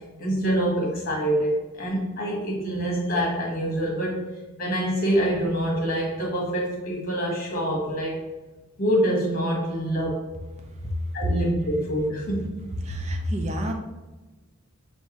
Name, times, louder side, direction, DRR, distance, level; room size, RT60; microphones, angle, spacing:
voice 1, 0.2-8.2 8.8-10.2 11.1-12.5, right 1 dB, 40° left, -2 dB, 1.2 m, -26 dB
voice 2, 12.8-13.7, equal, 30° right, 3 dB, 0.5 m, -28 dB
6.3 x 2.2 x 2.9 m, 1.2 s
head